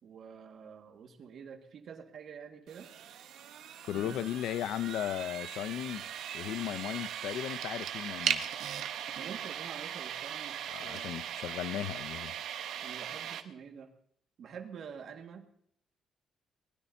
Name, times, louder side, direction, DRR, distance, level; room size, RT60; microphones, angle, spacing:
voice 1, 0.0-2.9 3.9-4.3 9.2-11.2 12.8-13.9 14.4-15.5, right 7 dB, 55° right, 1.8 m, -47 dB
sound 1, 2.7-13.4, right 10 dB, 80° right, 1.1 m, -39 dB
voice 2, 3.9-6.0 6.3-8.4 10.7-12.3, left 11 dB, 85° left, 0.6 m, -36 dB
23.0 x 20.0 x 2.8 m
cardioid pair, 155°, 0 cm